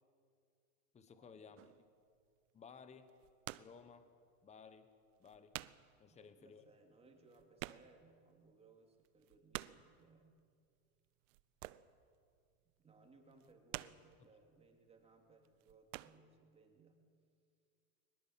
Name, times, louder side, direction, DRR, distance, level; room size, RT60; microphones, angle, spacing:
voice 1, 0.9-1.7 2.5-3.1 3.6-4.1 4.4-4.9 5.2-5.6 6.0-6.7, left 5 dB, 15° left, 10 dB, 1.2 m, -57 dB
sound 1, 1.6-1.9 3.0-3.8 4.2-4.3 4.9-5.0 5.2-5.9 6.2-6.3 6.6-6.7 6.9-8.2 8.5-8.6 9.0-9.9 11.2-12.0 12.4-12.7 13.3-14.2 14.9-15.1 15.4-16.2, right 18 dB, 60° right, 0.8 m, -49 dB
voice 2, 6.1-10.4 12.6-17.1, right 3 dB, 15° right, 2 dB, 3.3 m, -66 dB
22.5 x 20.0 x 7.6 m, 2.3 s
supercardioid pair, 135°, 43 cm